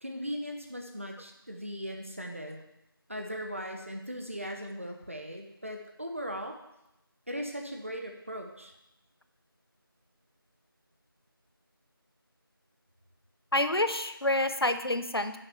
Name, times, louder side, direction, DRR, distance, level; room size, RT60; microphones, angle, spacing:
voice 1, 0.0-2.6 3.1-6.6 7.3-8.7, equal, 35° right, 3 dB, 1.0 m, -38 dB
voice 2, 13.5-15.4, left 1 dB, 85° left, 10 dB, 0.8 m, -28 dB
7.2 x 5.3 x 6.9 m, 0.86 s
figure-of-eight pair, 175°, 12 cm